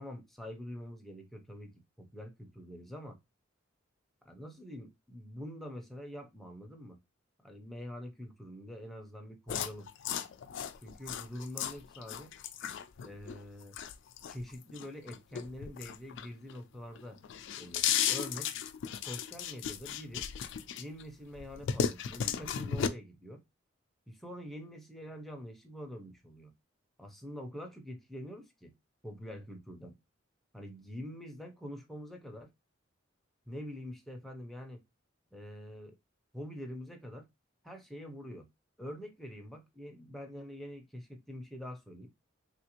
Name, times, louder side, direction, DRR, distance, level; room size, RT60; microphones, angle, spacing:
voice 1, 0.0-1.7 2.0-3.2 4.2-7.0 7.4-9.9 10.8-12.3 13.0-13.8 14.3-17.2 17.6-18.5 19.0-20.3 20.8-23.4 24.1-26.5 27.0-28.7 29.0-30.0 30.5-32.5 33.5-34.8 35.3-36.0 36.3-37.3 37.6-38.5 38.8-42.1, equal, ahead, 0.5 m, -45 dB
sound 1, 9.5-16.6 17.0-21.0 21.4-22.9, left 8 dB, 65° left, 0.3 m, -35 dB
3.2 x 2.5 x 2.8 m
head